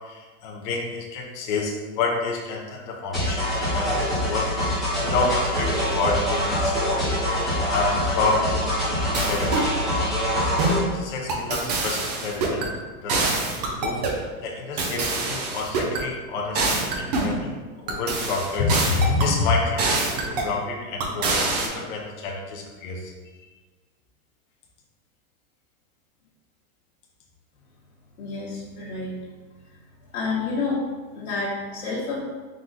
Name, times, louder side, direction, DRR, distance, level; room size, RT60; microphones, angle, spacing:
voice 1, 0.0-12.7 13.0-13.6 13.8-17.5 17.8-23.1, left 3 dB, 35° left, -2 dB, 0.5 m, -29 dB
sound 1, 3.1-10.8, equal, ahead, 1.0 m, -24 dB
sound 2, 9.1-9.7 10.6-10.9 11.3-12.7 13.1-14.2 14.8-16.0 16.6-17.4 17.9-19.3 19.8-20.5 21.0-21.7, right 3 dB, 30° right, 0.4 m, -25 dB
voice 2, 28.2-29.1 30.1-30.8 31.1-32.2, left 4 dB, 65° left, -7 dB, 1.2 m, -29 dB
3.7 x 3.0 x 3.9 m, 1.3 s
supercardioid pair, 165°, 44 cm